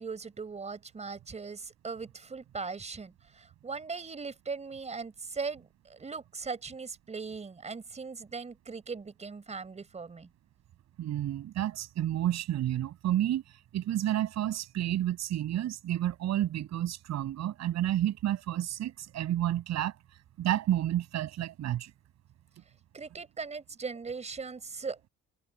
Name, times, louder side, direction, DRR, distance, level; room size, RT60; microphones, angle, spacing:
voice 1, 0.0-10.3 22.9-25.1, right 4 dB, 20° right, 4.3 m, -39 dB
voice 2, 11.0-13.4 13.7-19.9 20.4-21.9, right 12 dB, 55° right, 7.3 m, -30 dB
cardioid pair, 145°, 32 cm